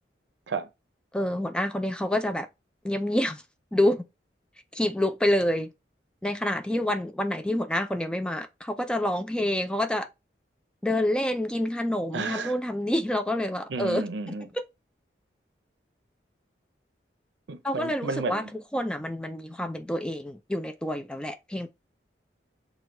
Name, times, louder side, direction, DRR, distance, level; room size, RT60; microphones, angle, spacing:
voice 1, 1.1-2.5 2.8-3.4 3.7-4.0 4.7-5.7 6.2-10.1 10.8-14.0 17.6-21.7, left 1 dB, 5° left, 0.3 m, -27 dB
voice 2, 12.1-12.6 13.7-14.5 17.5-18.5, right 4 dB, 85° right, 0.6 m, -32 dB
6.0 x 2.3 x 3.1 m
head